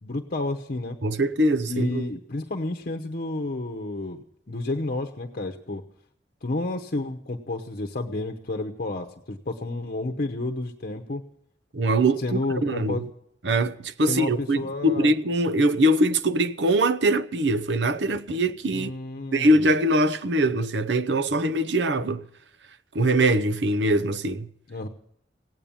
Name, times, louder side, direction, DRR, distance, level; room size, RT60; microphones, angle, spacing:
voice 1, 0.0-1.0 1.7-5.8 6.4-11.2 12.2-13.1 14.1-15.1 18.7-19.6 24.7-24.9, left 2 dB, 55° left, 0.8 m, -31 dB
voice 2, 1.0-2.1 11.7-13.0 13.4-18.9 19.3-22.2 22.9-24.5, right 1 dB, 70° right, 0.7 m, -22 dB
17.0 x 8.8 x 7.0 m
head